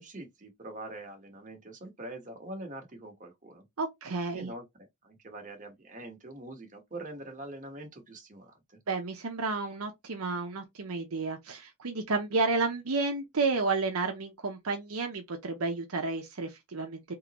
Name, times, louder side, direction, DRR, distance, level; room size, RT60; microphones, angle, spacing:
voice 1, 0.0-3.6 4.3-4.6 5.0-8.8, right 2 dB, 35° right, 1.3 m, -44 dB
voice 2, 3.8-4.5 8.9-17.1, right 3 dB, 75° right, 0.7 m, -31 dB
3.7 x 2.9 x 2.9 m
head